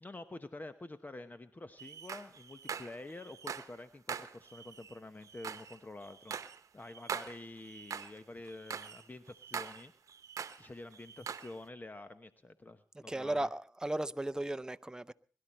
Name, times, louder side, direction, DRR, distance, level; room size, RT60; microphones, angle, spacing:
voice 1, 0.0-6.3 6.7-9.9 10.6-13.5, left 2 dB, 30° left, 1.0 m, -48 dB
sound 1, 1.8-3.8 4.1-8.2 8.5-10.7 10.9-11.5, right 7 dB, 70° right, 0.9 m, -43 dB
voice 2, 13.0-15.1, right 1 dB, 10° right, 0.7 m, -36 dB
22.0 x 12.0 x 4.3 m
supercardioid pair, 45°, 6 cm